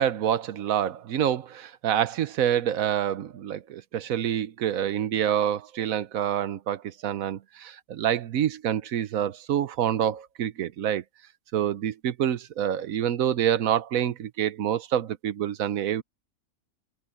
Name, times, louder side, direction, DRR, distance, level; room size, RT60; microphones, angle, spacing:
voice 1, 0.0-11.0 11.5-16.0, right 10 dB, 85° right, 1.2 m, -27 dB
open air
omnidirectional pair, 1.4 m